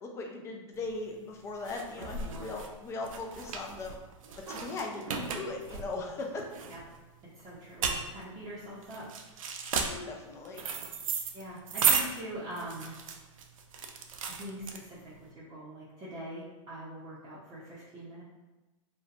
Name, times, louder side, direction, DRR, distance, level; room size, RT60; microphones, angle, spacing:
voice 1, 0.0-4.0 4.5-6.4 9.7-10.6, left 3 dB, 15° left, 1 dB, 0.3 m, -39 dB
sound 1, 0.8-15.2, right 6 dB, 80° right, 0.4 m, -34 dB
voice 2, 2.2-2.5 6.7-6.8 7.4-9.1 11.3-13.0 14.4-18.2, right 1 dB, 25° right, -9 dB, 0.6 m, -43 dB
2.7 x 2.1 x 2.5 m, 1.1 s
hypercardioid pair, 125°, 17 cm